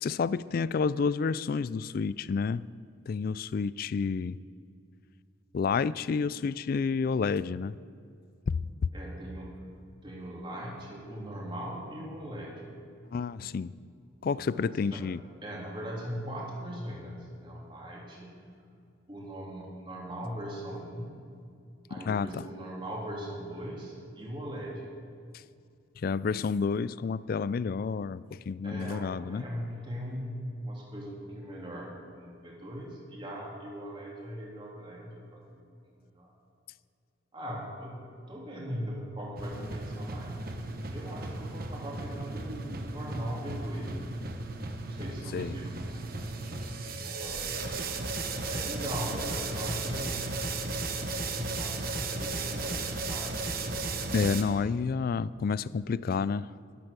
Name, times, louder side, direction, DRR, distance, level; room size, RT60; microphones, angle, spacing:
voice 1, 0.0-2.7 3.1-4.4 5.5-7.8 8.5-8.6 8.8-8.9 13.1-13.8 14.2-15.2 21.9-22.4 26.0-29.4 45.3-45.5 54.1-56.5, left 5 dB, 50° left, 19 dB, 0.3 m, -29 dB
voice 2, 8.9-9.6 10.0-12.7 14.3-15.0 15.4-18.4 19.1-21.2 21.9-24.8 28.6-35.7 35.9-36.3 37.3-38.0 38.3-44.1 44.9-46.0 46.9-48.0 48.5-50.3 51.0-53.3, equal, 25° right, -3 dB, 3.1 m, -40 dB
sound 1, 39.4-54.4, right 3 dB, 50° right, 1.1 m, -35 dB
12.5 x 12.5 x 6.8 m, 2.3 s
head